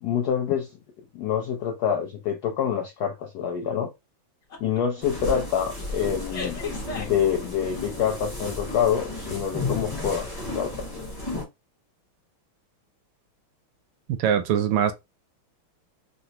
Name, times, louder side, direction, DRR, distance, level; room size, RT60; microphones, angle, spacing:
voice 1, 0.0-0.7 1.1-3.9 4.6-6.6 7.0-10.9, left 8 dB, 80° left, 0.8 m, -26 dB
sound 1, 4.5-4.8 5.2-5.4 6.3-7.8, left 4 dB, 50° left, 0.9 m, -35 dB
sound 2, 5.0-11.4, left 2 dB, 20° left, 0.6 m, -33 dB
voice 2, 14.2-14.9, right 9 dB, 80° right, 1.3 m, -22 dB
3.9 x 2.0 x 2.7 m
omnidirectional pair, 2.3 m